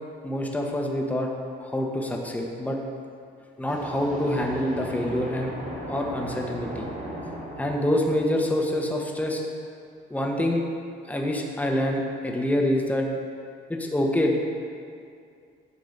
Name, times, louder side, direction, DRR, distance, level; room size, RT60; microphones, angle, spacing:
voice 1, 0.2-1.3 1.6-2.8 3.6-5.5 5.9-6.9 7.6-9.4 10.1-10.6 11.1-13.1 13.7-14.4, left 1 dB, 5° left, 0 dB, 1.0 m, -26 dB
sound 1, 3.7-9.3, right 1 dB, 40° right, 2.1 m, -37 dB
9.6 x 3.8 x 6.5 m, 2.3 s
cardioid pair, 90°, 20 cm